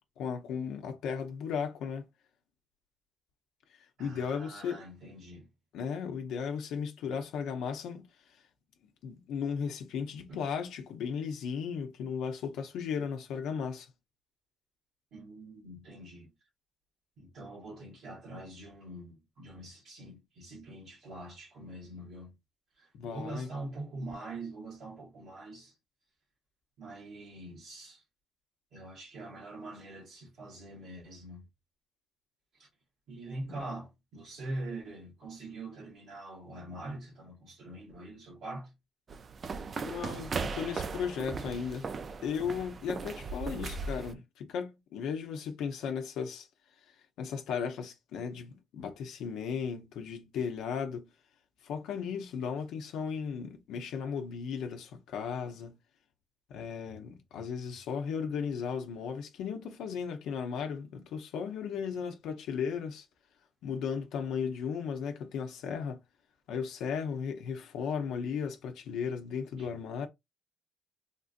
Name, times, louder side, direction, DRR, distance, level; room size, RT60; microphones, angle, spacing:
voice 1, 0.2-2.0 3.8-4.9 5.7-8.4 9.0-13.9 22.9-23.5 33.5-33.6 39.8-41.9 42.2-46.5 46.9-51.1 51.6-55.8 56.5-63.1 63.6-66.0 66.5-70.1, left 6 dB, 85° left, 0.7 m, -36 dB
voice 2, 4.0-5.5 10.3-10.4 15.1-16.3 17.2-22.4 22.8-25.7 26.8-28.0 28.7-31.5 32.5-32.7 33.1-38.7 69.6-69.7, right 2 dB, 70° right, 1.6 m, -44 dB
sound 1, 39.1-44.1, right 4 dB, 45° right, 0.4 m, -37 dB
3.6 x 2.5 x 2.5 m
cardioid pair, 90°, 0 cm